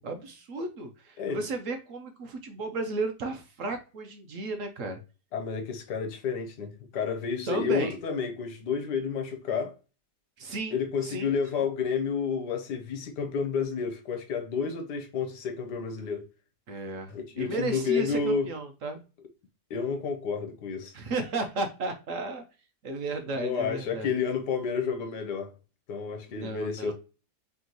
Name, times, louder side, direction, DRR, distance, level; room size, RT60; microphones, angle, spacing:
voice 1, 0.0-5.0 7.5-8.0 10.4-11.6 16.7-19.0 20.9-22.4 22.8-24.1 26.3-26.9, right 3 dB, 60° right, 1.0 m, -34 dB
voice 2, 5.3-9.8 10.7-16.2 17.1-18.5 19.7-20.9 23.3-25.5 25.9-26.9, left 6 dB, 80° left, 1.5 m, -30 dB
3.5 x 3.0 x 3.9 m
omnidirectional pair, 1.8 m